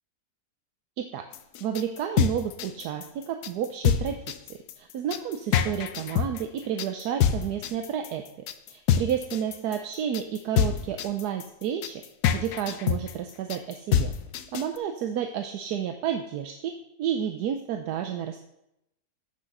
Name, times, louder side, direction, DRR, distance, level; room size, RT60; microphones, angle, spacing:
sound 1, 1.3-14.8, left 9 dB, 75° left, 1.2 m, -26 dB
voice 1, 1.6-4.2 4.5-12.0 12.3-14.1 14.5-18.4, right 9 dB, 80° right, 6 dB, 1.2 m, -31 dB
8.8 x 6.1 x 6.7 m, 0.84 s
omnidirectional pair, 1.7 m